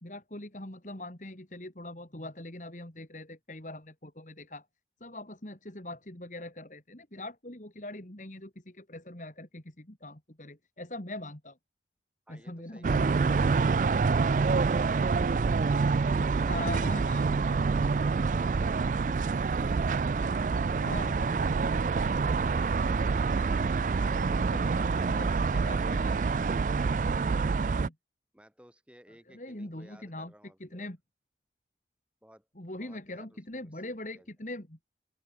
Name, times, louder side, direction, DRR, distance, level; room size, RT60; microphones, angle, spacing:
voice 1, 0.0-4.6 5.0-11.6 12.3-13.2 16.2-17.6 20.8-21.7 24.3-25.3 25.5-26.4 27.7-27.9 29.3-30.3 30.6-31.0 32.6-34.8, left 1 dB, 45° left, 2.7 m, -42 dB
voice 2, 12.3-15.2 28.3-30.9 32.2-32.5 32.8-33.8 34.1-34.3, equal, 5° right, 6.9 m, -57 dB
sound 1, 12.8-27.9, right 4 dB, 45° right, 0.3 m, -27 dB
open air
head